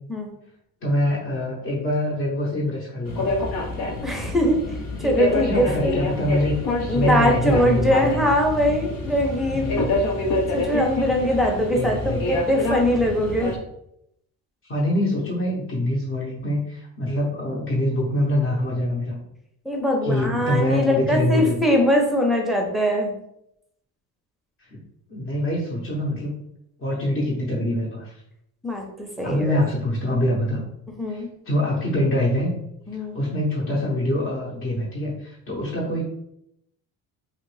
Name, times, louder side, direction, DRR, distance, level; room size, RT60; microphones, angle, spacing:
voice 1, 0.8-3.4 5.5-6.5 6.9-8.3 9.5-10.0 11.2-11.4 11.7-12.4 14.6-19.2 20.0-21.5 25.1-26.3 26.8-28.1 29.2-30.6 31.1-32.5 33.1-36.0, left 1 dB, 35° left, -6 dB, 0.8 m, -24 dB
sound 1, 3.1-13.6, left 2 dB, 70° left, 0.8 m, -27 dB
voice 2, 4.0-4.6 5.0-6.0 6.9-9.8 10.5-13.5 19.7-23.1 28.6-29.5 31.0-31.3 32.9-33.2, equal, ahead, 1 dB, 0.6 m, -22 dB
3.0 x 2.5 x 3.1 m, 0.77 s
cardioid pair, 105°, 36 cm